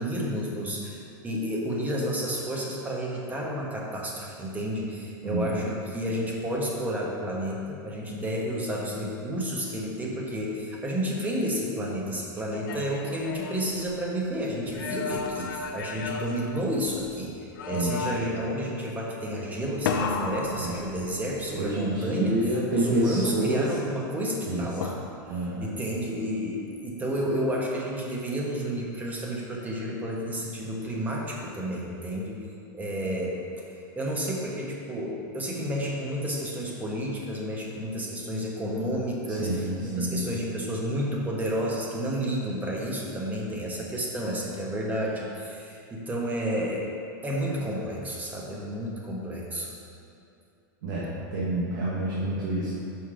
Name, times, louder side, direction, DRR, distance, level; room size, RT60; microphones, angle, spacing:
voice 1, 0.0-22.4 22.7-25.0 25.6-32.4 32.7-39.7 39.9-46.9 47.2-49.7, equal, 15° right, -2 dB, 1.1 m, -31 dB
voice 2, 5.2-5.6 17.7-18.2 20.5-20.8 21.5-23.7 24.4-24.7 25.3-25.7 39.3-40.3 50.8-52.8, right 1 dB, 70° right, -6 dB, 1.3 m, -28 dB
sound 1, 12.3-14.2 14.7-17.1 17.6-18.5 19.9-21.5 24.8-25.5, left 5 dB, 80° left, 0.5 m, -34 dB
5.4 x 4.9 x 4.8 m, 2.7 s
supercardioid pair, 130°, 11 cm